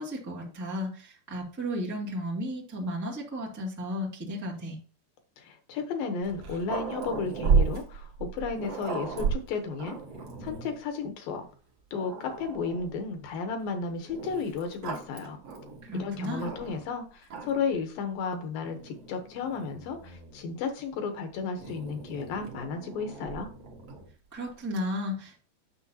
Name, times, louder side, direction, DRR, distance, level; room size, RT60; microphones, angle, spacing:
voice 1, 0.0-4.8 15.8-16.5 24.3-25.4, equal, 25° right, -4 dB, 0.3 m, -34 dB
voice 2, 5.4-10.0 10.4-11.5 11.9-15.4 15.9-23.5, left 5 dB, 70° left, 6 dB, 2.5 m, -33 dB
Growling, 6.2-10.8 11.5-11.6 11.9-13.0 14.1-16.9 17.2-17.8 18.6-20.5 21.6-24.1, right 5 dB, 55° right, 1.9 m, -33 dB
9.8 x 6.7 x 2.8 m, 0.38 s
omnidirectional pair, 4.7 m